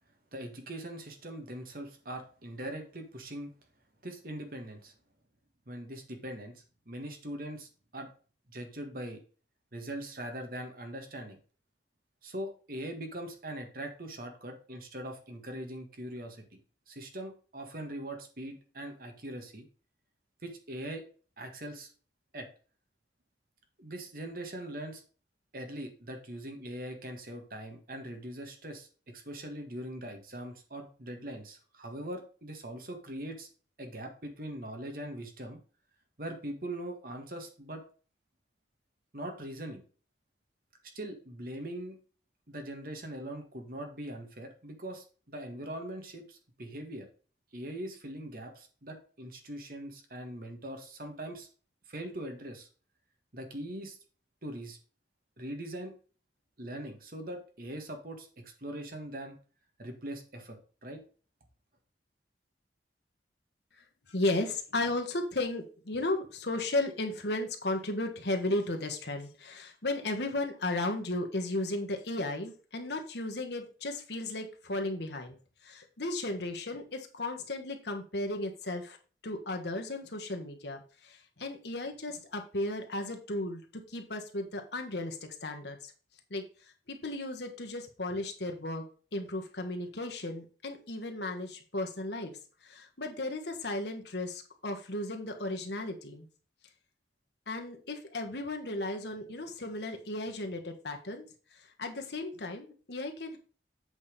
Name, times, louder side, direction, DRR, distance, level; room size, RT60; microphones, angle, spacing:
voice 1, 0.3-3.5 4.0-4.9 5.7-8.1 8.5-9.2 9.7-11.4 12.2-16.6 16.9-19.6 20.4-21.0 21.4-21.9 22.3-22.5 23.8-25.0 25.5-33.5 33.8-35.6 36.2-37.8 39.1-39.8 40.9-42.0 42.5-47.1 47.5-51.5 51.9-52.7 53.3-54.0 54.4-54.8 55.4-55.9 56.6-58.3 58.6-59.4 59.8-61.0, right 1 dB, 50° right, 4 dB, 1.6 m, -41 dB
voice 2, 64.1-75.4 75.6-79.0 79.2-85.9 86.3-86.4 86.9-88.8 89.1-92.3 92.6-96.3 97.5-101.3 101.8-103.4, left 2 dB, 70° left, 4 dB, 1.4 m, -35 dB
8.1 x 4.3 x 5.1 m, 0.38 s
head